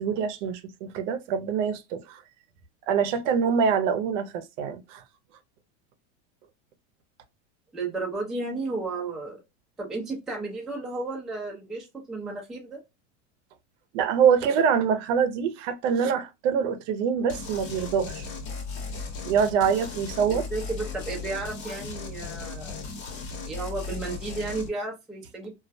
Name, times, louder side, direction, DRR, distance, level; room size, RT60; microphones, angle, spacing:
voice 1, 0.0-2.2 2.9-5.0 13.9-18.2 19.2-20.4, right 7 dB, 70° right, 0.6 m, -25 dB
voice 2, 7.7-9.4 9.8-12.8 20.3-22.9 23.5-25.5, right 3 dB, ahead, 0.3 m, -33 dB
sound 1, 17.3-24.7, left 4 dB, 45° left, 1.1 m, -36 dB
2.3 x 2.1 x 2.5 m
supercardioid pair, 140°, 38 cm